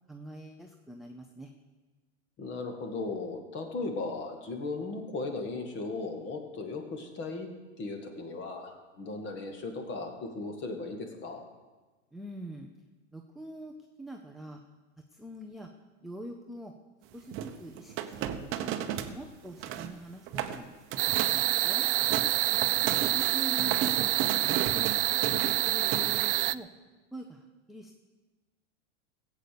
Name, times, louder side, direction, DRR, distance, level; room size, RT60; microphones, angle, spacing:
voice 1, 0.1-1.5 12.1-12.7 13.1-14.6 15.1-15.7 16.0-16.7 17.1-18.8 19.1-20.7 21.1-21.9 22.9-24.1 24.4-25.2 25.6-26.7 27.1-28.0, right 1 dB, ahead, 2 dB, 0.5 m, -44 dB
voice 2, 2.4-7.5 7.8-11.4 22.7-23.3, left 3 dB, 30° left, 4 dB, 2.2 m, -37 dB
sound 1, 17.3-19.2 19.4-19.9 20.3-20.6 20.9-21.4 21.8-26.5, right 10 dB, 35° right, 0.9 m, -34 dB
sound 2, 21.0-26.5, right 17 dB, 70° right, 0.5 m, -27 dB
16.0 x 8.3 x 6.9 m, 1.3 s
supercardioid pair, 135°, 37 cm